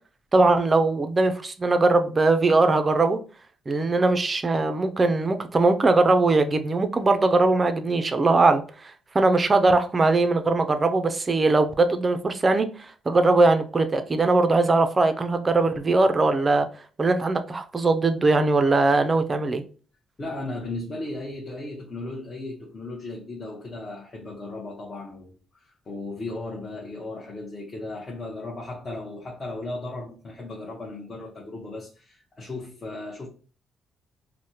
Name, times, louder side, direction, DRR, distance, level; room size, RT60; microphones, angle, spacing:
voice 1, 0.3-3.2 3.7-16.7 17.0-19.6, right 3 dB, 30° right, 0.4 m, -21 dB
voice 2, 20.2-33.3, left 2 dB, 35° left, 0.7 m, -36 dB
3.2 x 2.0 x 2.8 m
cardioid pair, 90°, 0 cm